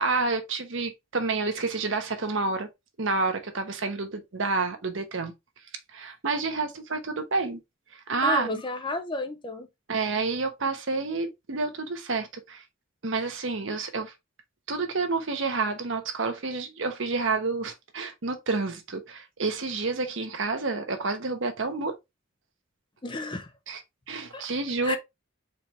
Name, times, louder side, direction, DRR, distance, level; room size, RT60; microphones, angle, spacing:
voice 1, 0.0-2.7 3.0-5.3 5.9-7.6 8.1-8.6 9.9-12.6 13.0-14.1 14.7-21.9 23.7-23.8 24.1-25.0, right 3 dB, 65° right, 1.0 m, -29 dB
voice 2, 8.2-9.7 23.0-23.5 24.3-24.4 24.8-25.0, left 2 dB, 25° left, 0.6 m, -31 dB
4.5 x 3.3 x 3.2 m
head